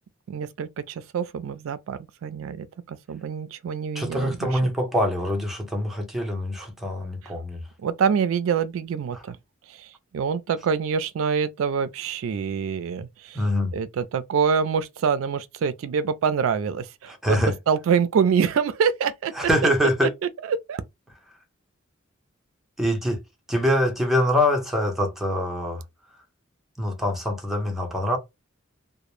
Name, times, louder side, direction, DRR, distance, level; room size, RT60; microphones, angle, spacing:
voice 1, 0.3-4.5 7.8-9.4 9.7-13.4 13.7-19.3 20.5-20.8, right 6 dB, 80° right, 0.3 m, -26 dB
voice 2, 3.9-7.6 9.1-9.2 13.3-13.8 17.1-17.6 19.4-20.1 22.8-23.2 23.5-25.8 26.8-28.2, equal, ahead, 0.6 m, -24 dB
2.1 x 2.0 x 3.0 m
head